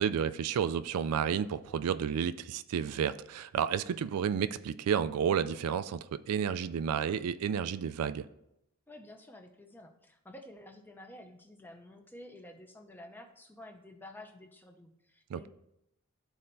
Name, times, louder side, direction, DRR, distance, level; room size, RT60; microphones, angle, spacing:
voice 1, 0.0-8.3 15.3-15.5, right 8 dB, 80° right, 0.3 m, -31 dB
voice 2, 8.9-15.5, left 1 dB, 10° left, 0.6 m, -51 dB
12.5 x 4.3 x 2.6 m
head